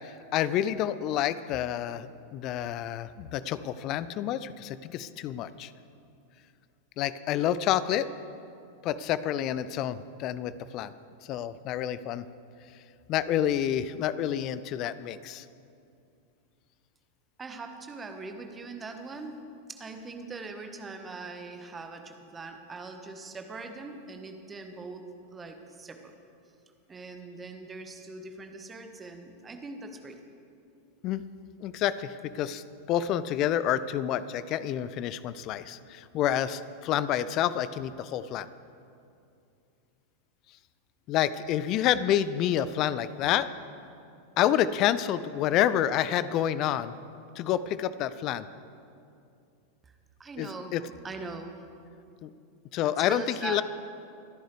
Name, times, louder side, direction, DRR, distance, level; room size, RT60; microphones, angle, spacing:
voice 1, 0.0-5.7 7.0-8.1 8.8-10.9 11.2-12.2 13.1-15.5 31.0-31.2 31.6-38.5 41.1-43.5 44.4-46.9 47.4-48.4 50.4-50.8 52.2-52.3 52.7-53.6, left 11 dB, 40° left, 15 dB, 0.4 m, -28 dB
voice 2, 17.4-26.2 26.9-30.2 49.8-49.9 50.2-50.8 51.0-51.6 52.8-53.6, right 3 dB, 15° right, 5 dB, 1.3 m, -41 dB
26.5 x 10.0 x 3.3 m, 2.5 s
figure-of-eight pair, 90°, 0 cm